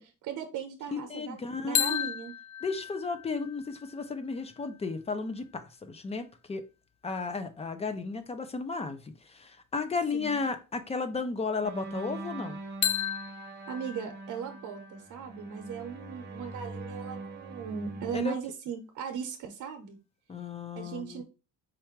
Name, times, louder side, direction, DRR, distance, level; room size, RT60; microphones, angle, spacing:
voice 1, 0.0-2.3 10.1-10.4 13.7-20.0 20.8-21.2, right 7 dB, 70° right, 0.8 m, -38 dB
voice 2, 0.9-2.1 2.6-6.6 7.0-12.6 18.1-18.3 20.3-21.2, left 4 dB, 20° left, 0.6 m, -34 dB
sound 1, 1.7-5.6 12.8-16.7, left 10 dB, 65° left, 0.6 m, -36 dB
sound 2, 11.6-18.2, right 2 dB, 35° right, 1.0 m, -42 dB
4.6 x 2.5 x 4.4 m
cardioid pair, 155°, 31 cm